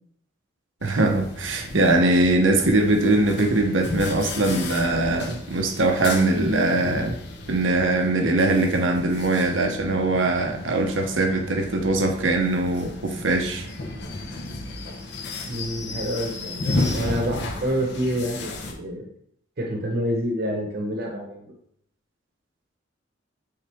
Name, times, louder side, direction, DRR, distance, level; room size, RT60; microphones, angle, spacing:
sound 1, 0.8-18.7, left 2 dB, 60° left, 1.1 m, -33 dB
voice 1, 0.8-7.2 7.5-13.7, right 2 dB, 85° right, 3 dB, 1.0 m, -21 dB
voice 2, 15.4-19.1 19.6-21.5, equal, 55° right, 1 dB, 1.0 m, -28 dB
9.0 x 4.0 x 3.5 m, 0.70 s
head